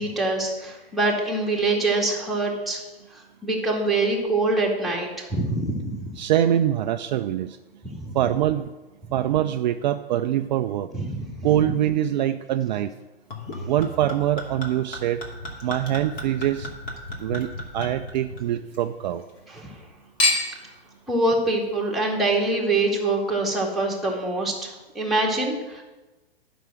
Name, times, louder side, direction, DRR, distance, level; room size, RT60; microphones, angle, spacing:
voice 1, 0.0-2.8 3.1-6.0 7.9-8.2 10.9-11.2 19.5-19.7 21.1-25.8, right 2 dB, ahead, -3 dB, 2.2 m, -24 dB
voice 2, 6.2-7.6 8.1-8.7 9.1-10.9 11.4-12.9 13.7-15.2 15.6-16.7 17.2-19.2, right 11 dB, 50° right, 9 dB, 0.5 m, -24 dB
Chink clink / Liquid, 13.3-18.8 19.2-19.8 20.2-20.7 21.4-21.5, left 1 dB, 30° left, 2.7 m, -31 dB
10.5 x 6.0 x 7.6 m, 1.1 s
hypercardioid pair, 115°, 31 cm